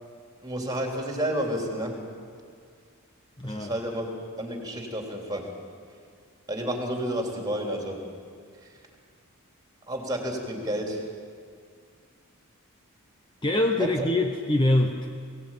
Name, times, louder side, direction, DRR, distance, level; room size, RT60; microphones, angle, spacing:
voice 1, 0.4-2.0 3.4-4.1 4.4-5.5 6.5-8.0 8.6-8.8 9.9-11.1 13.8-14.1, right 1 dB, 15° right, 1 dB, 3.4 m, -30 dB
voice 2, 3.4-3.7 13.4-15.1, left 1 dB, 20° left, 4 dB, 0.9 m, -24 dB
22.5 x 17.5 x 9.1 m, 2.1 s
head